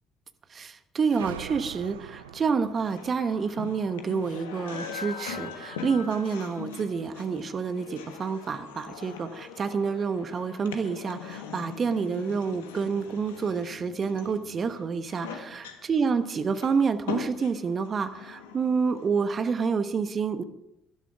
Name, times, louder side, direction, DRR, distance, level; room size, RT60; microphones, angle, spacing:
voice 1, 0.5-15.6 15.9-20.4, right 5 dB, 40° right, 11 dB, 1.1 m, -28 dB
sound 1, 1.1-5.6, right 10 dB, 80° right, 0.5 m, -44 dB
sound 2, 1.9-19.4, left 6 dB, 75° left, 1.3 m, -41 dB
18.0 x 12.5 x 3.6 m, 0.80 s
figure-of-eight pair, 50°, 0 cm